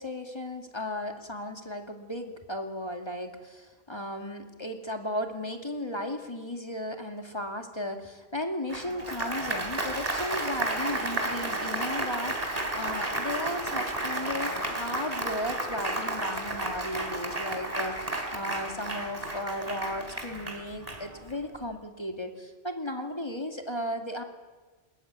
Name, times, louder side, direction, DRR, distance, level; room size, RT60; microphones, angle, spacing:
voice 1, 0.0-24.2, left 1 dB, 25° left, 4 dB, 2.4 m, -35 dB
Applause, 8.7-21.4, right 1 dB, 35° right, 3.4 m, -32 dB
21.0 x 21.0 x 9.5 m, 1.3 s
omnidirectional pair, 1.1 m